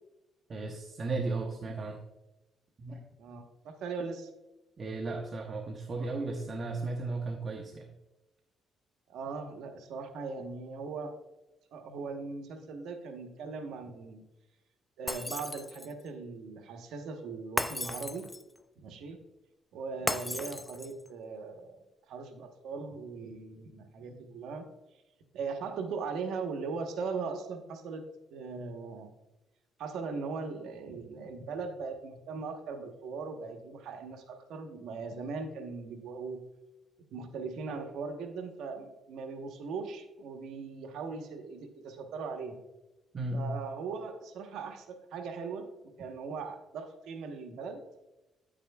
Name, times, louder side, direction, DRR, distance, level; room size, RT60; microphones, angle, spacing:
voice 1, 0.5-2.0 2.8-3.0 4.8-7.9 43.1-43.6, right 3 dB, 45° right, 2 dB, 0.9 m, -35 dB
voice 2, 3.2-4.3 9.1-11.1 11.7-14.2 15.0-18.3 18.8-19.2 19.7-21.8 22.1-24.6 25.3-28.0 28.3-29.1 29.8-36.4 37.1-42.6 43.3-45.7 46.0-47.8, right 4 dB, 85° right, 5 dB, 1.1 m, -39 dB
Shatter, 15.1-16.0 17.6-18.6 20.1-21.1, left 2 dB, 15° left, 0.5 m, -35 dB
9.7 x 8.8 x 2.3 m, 1.0 s
cardioid pair, 90°, 0 cm